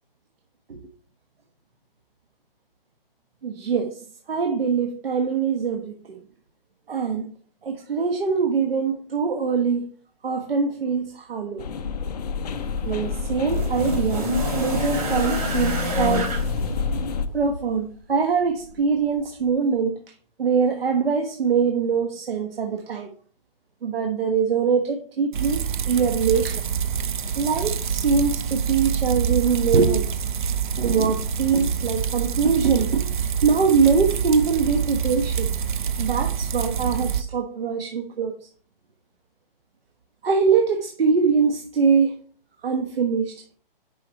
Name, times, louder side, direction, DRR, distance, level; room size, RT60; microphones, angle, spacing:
voice 1, 3.4-6.2 6.9-7.3 7.6-9.9 10.2-11.7 12.9-14.3 14.6-16.3 17.3-19.9 20.4-23.1 23.8-25.6 25.9-26.6 27.4-30.3 30.8-33.1 33.4-35.5 36.0-38.3 40.2-42.1 42.6-43.5, right 5 dB, 80° right, 1.3 m, -23 dB
sound 1, 11.6-17.3, left 6 dB, 45° left, 0.6 m, -28 dB
sound 2, 12.4-17.7 18.7-18.8, right 1 dB, 40° right, 3.6 m, -29 dB
sound 3, 25.3-37.2, right 7 dB, 55° right, 0.8 m, -26 dB
10.5 x 5.0 x 3.0 m
hypercardioid pair, 160°, 29 cm